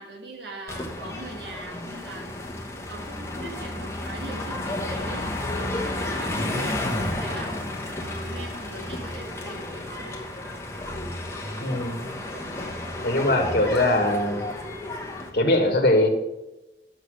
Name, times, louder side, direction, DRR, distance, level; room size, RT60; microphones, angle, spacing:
voice 1, 0.0-2.3 2.9-7.5 8.0-10.2, right 2 dB, 75° right, 1 dB, 1.6 m, -40 dB
sound 1, 0.7-15.3, left 1 dB, 15° left, 1.1 m, -32 dB
voice 2, 11.6-12.0 13.0-14.4 15.3-16.1, left 1 dB, 60° left, 2 dB, 1.4 m, -21 dB
6.6 x 6.4 x 6.3 m, 0.99 s
head